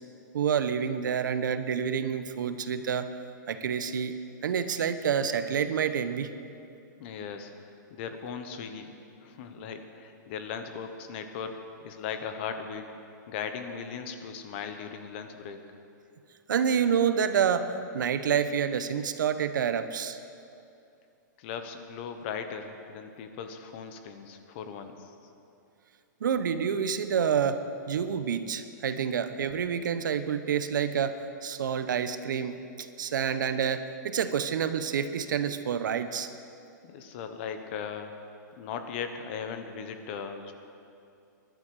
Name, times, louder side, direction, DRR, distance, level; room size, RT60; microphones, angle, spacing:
voice 1, 0.3-3.1 3.5-4.2 4.4-6.3 16.5-20.2 26.2-27.6 27.9-36.3, right 7 dB, 75° right, 10 dB, 1.0 m, -28 dB
voice 2, 7.0-9.0 9.2-12.9 13.3-15.6 21.4-25.1 36.8-38.3 38.6-40.5, left 6 dB, 35° left, 7 dB, 1.1 m, -38 dB
21.0 x 11.5 x 4.9 m, 2.6 s
hypercardioid pair, 165°, 10 cm